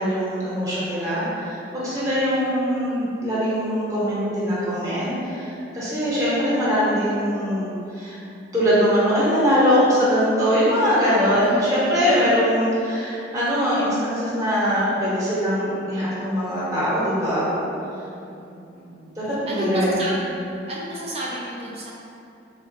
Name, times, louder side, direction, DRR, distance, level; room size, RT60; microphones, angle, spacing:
voice 1, 0.0-8.2 8.5-17.5 19.4-19.9, equal, 15° right, -9 dB, 0.7 m, -22 dB
voice 2, 11.4-12.0 12.2-12.3 18.2-19.2 19.5-20.4 20.7-21.9, right 1 dB, 35° right, -4 dB, 0.3 m, -34 dB
4.2 x 2.2 x 2.7 m, 2.7 s
head